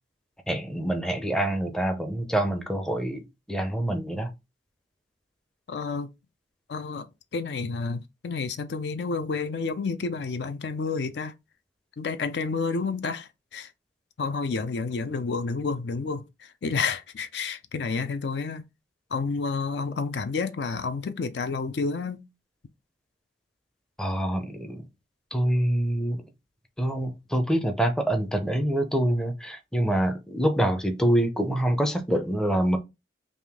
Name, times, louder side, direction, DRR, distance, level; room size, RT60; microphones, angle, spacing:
voice 1, 0.5-3.2 3.5-4.3 24.0-24.8 25.3-26.2 26.8-32.8, right 1 dB, 5° left, 0.5 m, -26 dB
voice 2, 5.7-6.1 6.7-7.1 7.3-11.3 12.0-13.7 14.2-18.6 19.1-22.2, left 4 dB, 70° left, 0.4 m, -30 dB
3.5 x 2.6 x 3.5 m
head